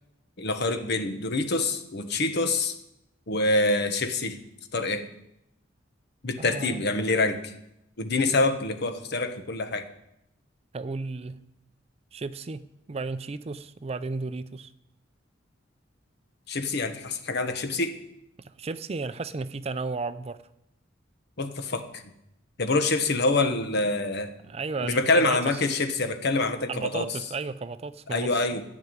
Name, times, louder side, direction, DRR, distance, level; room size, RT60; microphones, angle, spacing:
voice 1, 0.4-2.7 3.3-4.4 4.7-5.1 6.2-7.5 8.0-9.9 16.5-18.0 21.4-22.0 22.6-24.3 24.8-27.1 28.1-28.6, left 2 dB, 55° left, 8 dB, 1.1 m, -26 dB
voice 2, 6.4-6.8 10.7-11.4 12.1-14.7 18.4-20.4 24.5-25.6 26.7-28.3, right 3 dB, 30° right, 13 dB, 0.4 m, -34 dB
12.5 x 5.9 x 9.1 m, 0.82 s
head